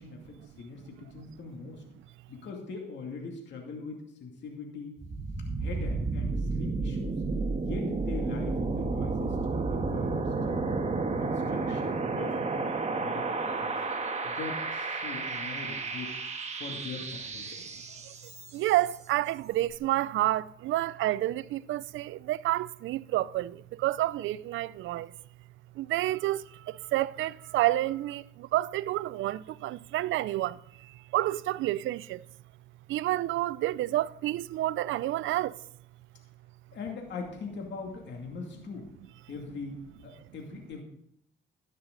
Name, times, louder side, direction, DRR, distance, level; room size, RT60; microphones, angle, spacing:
voice 1, 0.0-1.8 2.3-4.9 5.6-7.2 7.6-10.8 11.2-13.8 14.2-16.2 16.5-17.6 36.7-38.9 39.3-40.8, left 4 dB, 65° left, 2.5 m, -41 dB
sound 1, 5.0-18.8, right 3 dB, 35° right, 1.5 m, -32 dB
voice 2, 18.5-25.1 25.8-32.3 32.9-35.6, right 15 dB, 80° right, 0.4 m, -29 dB
13.0 x 9.5 x 3.9 m
cardioid pair, 90°, 20 cm